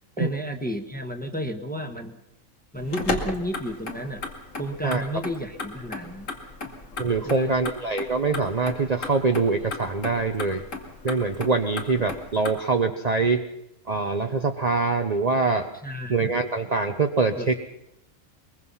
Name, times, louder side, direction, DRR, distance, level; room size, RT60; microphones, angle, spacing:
voice 1, 0.2-2.2 2.7-4.2 4.6-6.3 7.2-7.5 15.8-16.3 17.4-17.6, equal, 5° left, 3 dB, 1.5 m, -32 dB
Motor vehicle (road), 2.8-12.5, left 3 dB, 65° left, 2.6 m, -36 dB
voice 2, 7.0-10.6 11.0-13.4 13.9-15.7 16.1-17.6, right 4 dB, 35° right, 5 dB, 0.9 m, -24 dB
22.5 x 22.0 x 5.7 m, 0.83 s
omnidirectional pair, 1.4 m